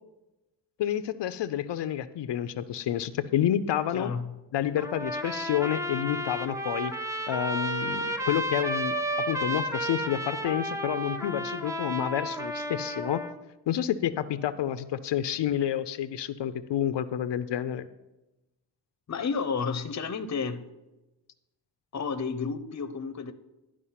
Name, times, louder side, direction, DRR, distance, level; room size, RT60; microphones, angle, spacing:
voice 1, 0.8-4.1 4.5-6.9 7.3-13.2 13.7-17.9, left 10 dB, 90° left, 12 dB, 0.5 m, -29 dB
voice 2, 3.9-4.3 19.1-20.6 21.9-23.3, left 5 dB, 40° left, 11 dB, 0.6 m, -31 dB
Trumpet, 4.8-13.4, equal, 10° right, 0.5 m, -32 dB
11.5 x 4.9 x 5.7 m, 0.99 s
wide cardioid pair, 130°, 41 cm